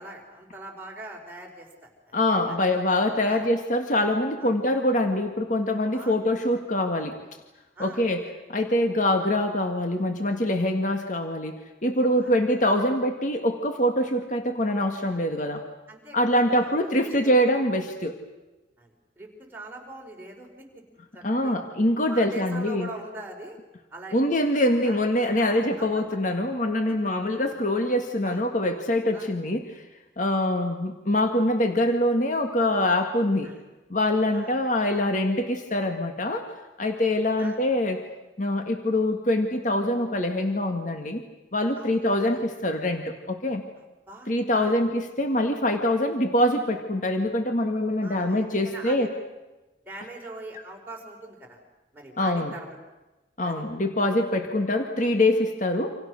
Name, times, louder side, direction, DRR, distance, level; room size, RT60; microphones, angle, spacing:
voice 1, 0.0-2.1 2.5-2.6 3.2-3.4 4.4-4.5 5.9-6.2 7.7-8.0 12.1-12.3 15.9-17.3 18.8-20.6 21.1-21.6 22.0-23.6 23.9-24.3 24.8-25.0 25.4-25.9 28.2-28.5 29.1-29.3 33.4-33.6 34.2-34.5 37.4-37.6 41.8-42.4 43.8-44.8 48.0-49.1 49.8-51.6 51.9-52.8 53.4-53.6, right 2 dB, 10° right, -1 dB, 5.0 m, -42 dB
voice 2, 2.1-7.2 7.8-8.2 8.5-15.6 16.1-18.2 21.2-22.9 24.1-29.8 30.2-33.5 33.9-36.5 36.8-38.0 38.4-41.2 41.5-43.6 44.3-49.1 52.2-52.5 53.4-56.0, left 1 dB, 40° left, 5 dB, 1.8 m, -24 dB
29.0 x 27.0 x 6.5 m, 1.1 s
head